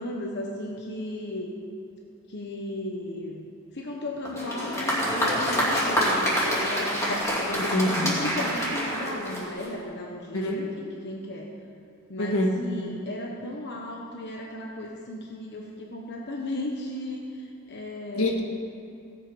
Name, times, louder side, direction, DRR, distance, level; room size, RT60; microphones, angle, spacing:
voice 1, 0.0-1.5 2.3-7.0 7.4-11.5 12.1-18.3, left 1 dB, 50° left, -1 dB, 1.2 m, -35 dB
Applause, 4.3-9.8, equal, 15° left, 2.6 m, -27 dB
voice 2, 7.5-8.1 10.3-10.6 12.2-12.5 18.2-18.4, left 1 dB, 75° left, 1 dB, 1.7 m, -25 dB
16.5 x 8.2 x 5.5 m, 2.6 s
head